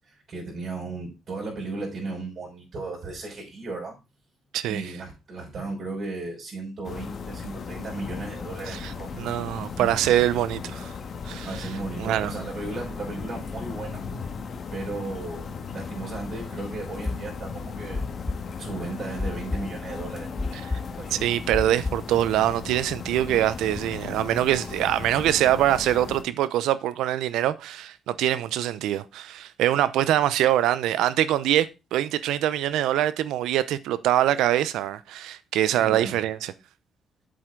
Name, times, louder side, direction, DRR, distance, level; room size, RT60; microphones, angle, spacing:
voice 1, 0.0-3.9 4.7-9.1 9.8-10.2 11.4-14.0 14.7-18.1 18.4-20.4 20.9-21.3 35.6-36.2, right 3 dB, 50° right, 5.6 m, -35 dB
voice 2, 4.5-4.9 8.7-10.9 11.3-11.7 12.0-12.3 21.1-36.5, right 12 dB, 90° right, 0.7 m, -24 dB
sound 1, 6.8-26.2, left 5 dB, 50° left, 1.6 m, -36 dB
sound 2, 17.0-22.1, left 3 dB, 15° left, 0.8 m, -31 dB
7.8 x 7.8 x 3.8 m
cardioid pair, 90°, 0 cm